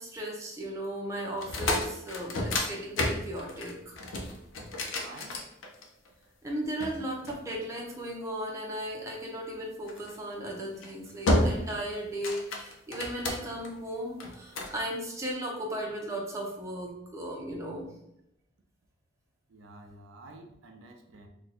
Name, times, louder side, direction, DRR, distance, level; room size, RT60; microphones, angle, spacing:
voice 1, 0.0-4.0 6.4-17.9, right 1 dB, 15° right, -2 dB, 0.6 m, -36 dB
sound 1, 1.3-6.1 6.8-8.1 9.9-10.2 10.7-10.9 11.3-11.8 12.1-13.7 14.2-14.8, left 1 dB, 85° left, 0.6 m, -31 dB
voice 2, 4.9-5.4 19.5-21.3, right 2 dB, 75° right, 3 dB, 0.5 m, -50 dB
2.7 x 2.2 x 4.0 m, 0.80 s
head